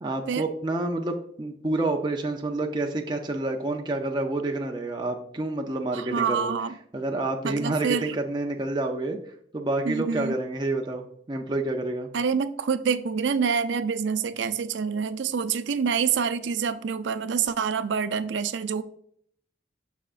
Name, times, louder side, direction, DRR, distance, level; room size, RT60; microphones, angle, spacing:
voice 1, 0.0-6.5 6.9-9.2 9.5-12.1, right 2 dB, 25° right, 0.5 m, -28 dB
voice 2, 5.9-6.8 7.4-8.2 9.8-10.3 12.1-18.8, right 6 dB, 85° right, 0.4 m, -27 dB
6.7 x 6.0 x 2.5 m
head